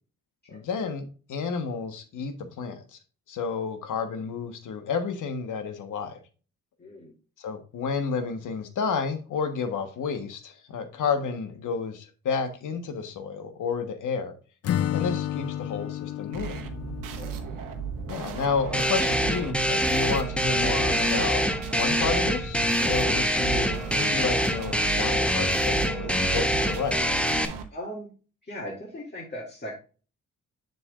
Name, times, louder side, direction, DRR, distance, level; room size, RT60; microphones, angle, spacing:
voice 1, 0.5-3.0 3.3-6.2 7.4-14.3 14.9-16.6 18.1-27.0, left 5 dB, 70° left, 1.3 m, -31 dB
voice 2, 6.8-7.1 17.1-17.3 27.7-28.1 28.4-29.7, equal, 30° left, 2.4 m, -38 dB
Acoustic guitar / Strum, 14.6-18.5, left 11 dB, 50° left, 0.4 m, -32 dB
sound 1, 16.3-27.6, right 7 dB, 80° right, 1.0 m, -36 dB
sound 2, 18.7-27.4, equal, 5° left, 1.0 m, -25 dB
7.1 x 6.2 x 2.4 m
supercardioid pair, 50°, 32 cm